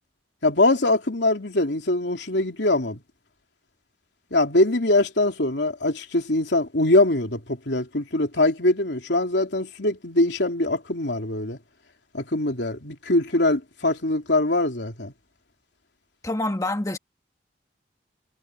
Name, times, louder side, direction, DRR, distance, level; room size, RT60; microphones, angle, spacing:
voice 1, 0.4-3.0 4.3-11.6 12.1-15.1, left 2 dB, 75° left, 3.2 m, -22 dB
voice 2, 16.2-17.0, left 2 dB, 20° left, 1.5 m, -26 dB
head